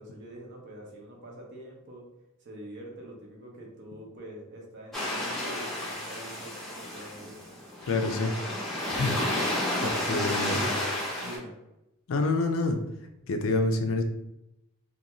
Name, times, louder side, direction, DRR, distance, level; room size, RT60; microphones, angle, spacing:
voice 1, 0.0-2.0 2.4-7.4 9.9-10.8 11.2-11.5, right 1 dB, 55° right, 0 dB, 0.6 m, -44 dB
sound 1, 4.9-11.4, left 1 dB, ahead, 0.6 m, -31 dB
voice 2, 7.8-8.3 8.9-10.7 12.1-12.8 13.3-14.0, left 3 dB, 60° left, 5 dB, 0.4 m, -28 dB
2.5 x 2.2 x 2.9 m, 0.89 s
head